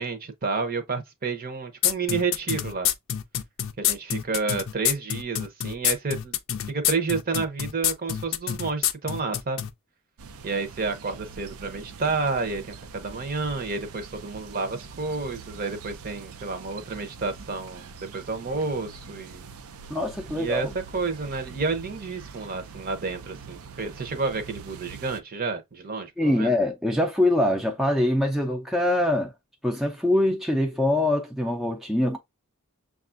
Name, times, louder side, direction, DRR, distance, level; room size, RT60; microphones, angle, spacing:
voice 1, 0.0-2.9 3.8-6.4 6.7-9.6 10.4-19.5 20.3-26.5, right 4 dB, 40° right, 0.7 m, -30 dB
sound 1, 1.8-9.7, left 11 dB, 65° left, 0.4 m, -26 dB
sound 2, 10.2-25.2, right 5 dB, 80° right, 0.5 m, -44 dB
voice 2, 19.9-20.7 26.2-29.3 29.6-32.2, left 1 dB, ahead, 0.5 m, -24 dB
6.3 x 2.4 x 2.5 m
head